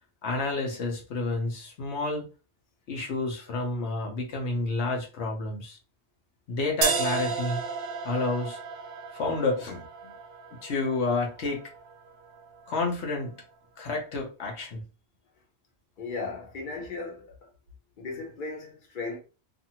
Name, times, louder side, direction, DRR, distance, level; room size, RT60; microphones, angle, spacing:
voice 1, 0.2-2.3 2.9-5.8 6.5-7.6 8.0-8.6 9.1-9.8 10.6-11.6 12.7-13.3 13.8-14.8, left 3 dB, 80° left, 1.1 m, -29 dB
sound 1, 6.8-12.8, right 5 dB, 60° right, 0.7 m, -34 dB
voice 2, 16.0-17.5 18.0-19.2, left 3 dB, 50° left, 1.0 m, -36 dB
2.6 x 2.5 x 2.7 m
omnidirectional pair, 1.1 m